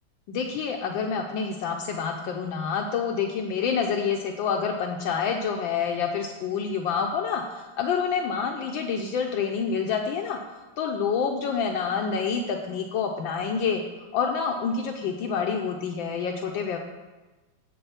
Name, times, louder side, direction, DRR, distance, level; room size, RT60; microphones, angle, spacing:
voice 1, 0.3-10.4 10.8-13.8 14.1-16.8, left 6 dB, 75° left, 2 dB, 1.4 m, -27 dB
8.3 x 6.7 x 5.7 m, 1.2 s
omnidirectional pair, 2.3 m